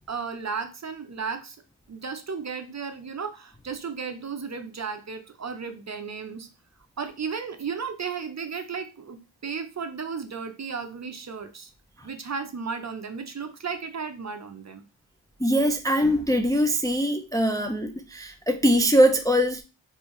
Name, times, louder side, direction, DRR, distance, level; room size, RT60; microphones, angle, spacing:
voice 1, 0.0-1.6 1.9-6.5 7.0-11.7 12.0-14.8, right 5 dB, 35° right, 0.6 m, -34 dB
voice 2, 15.4-19.6, equal, 10° left, 0.4 m, -22 dB
3.2 x 2.6 x 3.1 m
cardioid pair, 45°, 46 cm